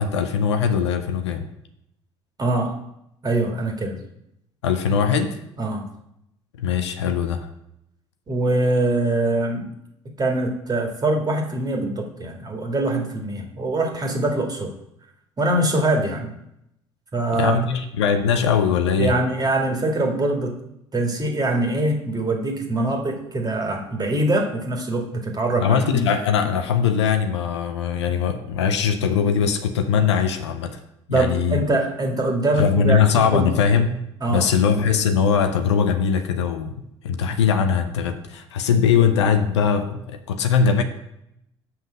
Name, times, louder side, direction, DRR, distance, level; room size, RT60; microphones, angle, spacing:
voice 1, 0.0-1.4 4.6-5.4 6.6-7.5 17.3-19.1 25.6-30.8 31.1-31.6 32.6-34.0 34.3-40.8, left 6 dB, 75° left, 8 dB, 0.7 m, -21 dB
voice 2, 2.4-2.8 3.2-4.0 5.6-5.8 8.3-9.7 10.2-14.7 15.4-16.3 17.1-17.6 19.0-20.6 20.9-26.0 31.1-33.0 33.3-33.5 34.2-34.5, right 2 dB, 25° right, 3 dB, 1.8 m, -23 dB
5.8 x 5.6 x 6.5 m, 0.80 s
figure-of-eight pair, 60°, 15 cm